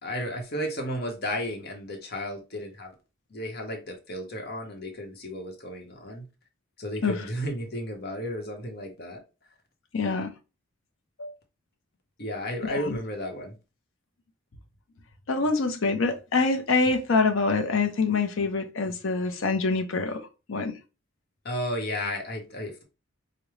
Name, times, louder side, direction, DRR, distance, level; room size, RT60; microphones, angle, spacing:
voice 1, 0.0-2.9 3.3-6.3 6.8-9.2 12.2-13.6 21.4-22.8, equal, 50° left, 0.9 m, -33 dB
voice 2, 9.9-10.3 11.2-11.3 12.6-13.0 15.3-20.8, left 4 dB, 75° left, 0.6 m, -25 dB
4.9 x 2.1 x 3.1 m
head